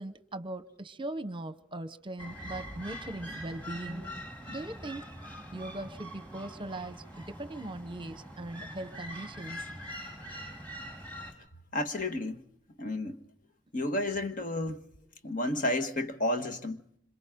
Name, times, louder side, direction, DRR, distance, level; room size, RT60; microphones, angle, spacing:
voice 1, 0.0-4.1 4.5-5.1 5.5-9.7, right 1 dB, 25° right, 0.9 m, -40 dB
sound 1, 2.2-11.3, equal, 10° left, 4.2 m, -43 dB
sound 2, 2.4-6.3, equal, 30° left, 6.0 m, -54 dB
voice 2, 11.7-12.4 12.8-13.2 13.7-14.8 15.2-16.8, left 1 dB, 45° left, 1.4 m, -31 dB
27.0 x 26.5 x 3.7 m
head